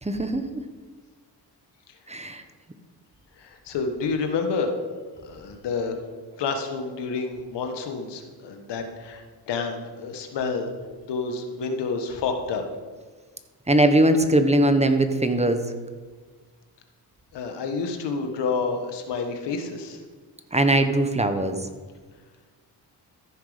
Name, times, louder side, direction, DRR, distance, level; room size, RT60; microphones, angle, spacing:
voice 1, 0.0-0.6 2.1-2.4 13.7-15.6 20.5-21.6, right 1 dB, 15° right, 7 dB, 1.1 m, -20 dB
voice 2, 3.4-4.8 5.2-5.9 6.4-10.7 11.1-12.6 17.3-20.0, left 4 dB, 85° left, 5 dB, 1.4 m, -29 dB
14.0 x 6.0 x 5.1 m, 1.5 s
cardioid pair, 65°, 41 cm